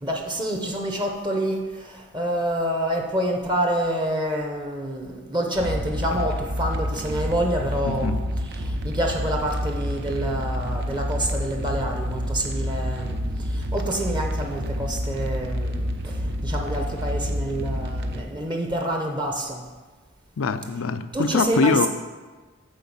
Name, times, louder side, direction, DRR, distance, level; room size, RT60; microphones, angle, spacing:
voice 1, 0.0-19.6 21.1-21.9, right 1 dB, 20° right, 0.9 m, -27 dB
sound 1, 5.6-18.2, equal, 55° right, 0.7 m, -28 dB
voice 2, 7.8-8.2 20.4-21.9, left 4 dB, 75° left, 0.5 m, -23 dB
7.6 x 4.8 x 7.2 m
head